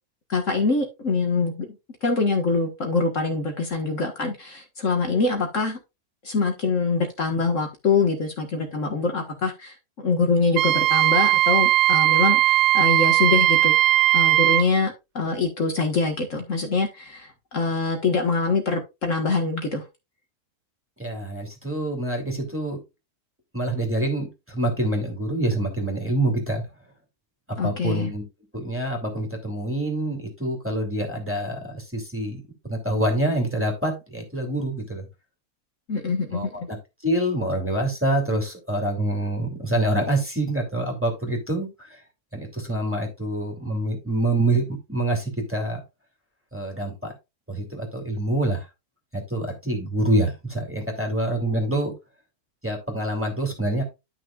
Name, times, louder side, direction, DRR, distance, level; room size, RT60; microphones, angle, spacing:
voice 1, 0.3-1.7 2.0-5.8 6.2-9.8 10.0-13.8 14.1-19.8 27.6-28.1 35.9-36.7, left 4 dB, 55° left, 1.9 m, -24 dB
Wind instrument woodwind instrument, 10.6-14.7, right 15 dB, 85° right, 1.1 m, -18 dB
voice 2, 21.0-22.8 23.5-26.6 27.6-28.2 28.5-35.1 36.3-36.8 37.0-42.0 42.3-45.8 46.5-47.1 47.5-48.7 49.1-51.9 52.6-53.8, right 1 dB, 10° right, 2.8 m, -26 dB
11.5 x 6.1 x 2.4 m
omnidirectional pair, 1.6 m